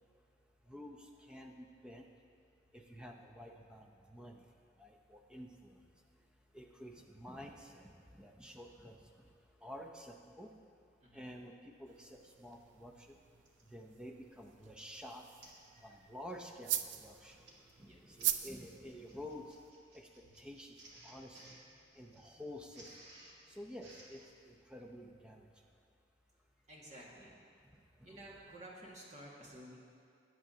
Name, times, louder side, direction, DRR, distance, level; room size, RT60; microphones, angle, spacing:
voice 1, 0.7-2.0 2.7-4.4 4.8-5.8 6.5-9.0 9.6-10.5 11.1-12.9 13.7-15.2 15.8-17.4 17.8-19.4 19.9-20.1 20.4-20.7 21.0-21.4 22.0-22.9 23.6-25.4, equal, 5° right, 2 dB, 0.7 m, -50 dB
sound 1, 11.9-19.7, right 11 dB, 85° right, 0.4 m, -43 dB
Printer, 13.4-13.7 14.3-14.5 14.8-14.9 15.4-15.7 16.0-16.3 17.1-24.3, right 1 dB, 65° right, 1.7 m, -59 dB
voice 2, 26.7-27.3 28.0-29.8, right 1 dB, 40° right, -4 dB, 1.8 m, -53 dB
18.0 x 7.5 x 2.8 m, 2.4 s
head